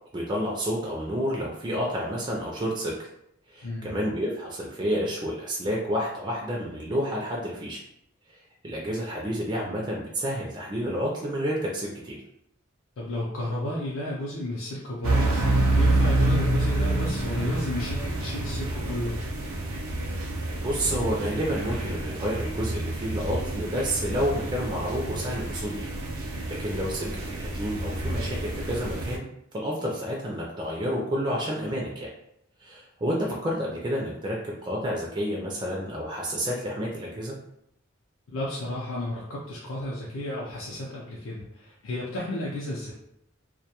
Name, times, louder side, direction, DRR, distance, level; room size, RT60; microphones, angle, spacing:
voice 1, 0.1-2.9 3.5-7.8 8.3-12.2 20.6-25.9 26.5-29.3 29.5-32.1 32.6-37.4, equal, 20° right, -2 dB, 0.3 m, -30 dB
voice 2, 3.6-3.9 13.0-15.4 15.8-19.2 26.4-26.5 38.3-42.9, left 1 dB, 70° left, -5 dB, 0.5 m, -33 dB
sound 1, 15.0-29.2, right 2 dB, 90° right, 0.5 m, -28 dB
2.2 x 2.2 x 2.8 m, 0.75 s
head